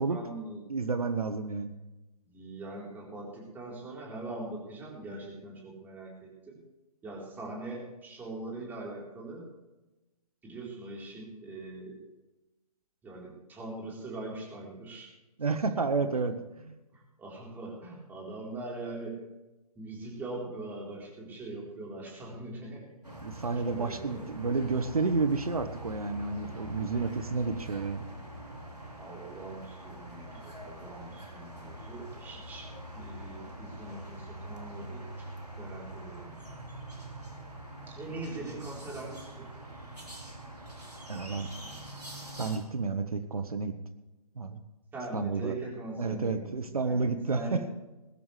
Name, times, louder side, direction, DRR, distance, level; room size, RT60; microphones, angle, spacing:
voice 1, 0.1-0.7 2.2-6.6 7.0-9.5 10.4-12.1 13.0-15.1 16.5-19.2 19.8-22.9 23.3-24.2 29.0-35.3 35.6-36.6 37.9-39.5 41.3-41.7 44.9-47.6, right 2 dB, 10° right, -2 dB, 4.1 m, -42 dB
voice 2, 0.7-1.7 15.4-16.3 23.2-28.0 41.1-41.5 42.4-43.7 44.4-44.6 45.1-45.5 46.0-47.6, right 4 dB, 70° right, 9 dB, 1.4 m, -30 dB
sound 1, 23.0-42.6, right 1 dB, 90° right, 4.3 m, -44 dB
21.0 x 12.5 x 3.4 m, 1.0 s
figure-of-eight pair, 135°, 20 cm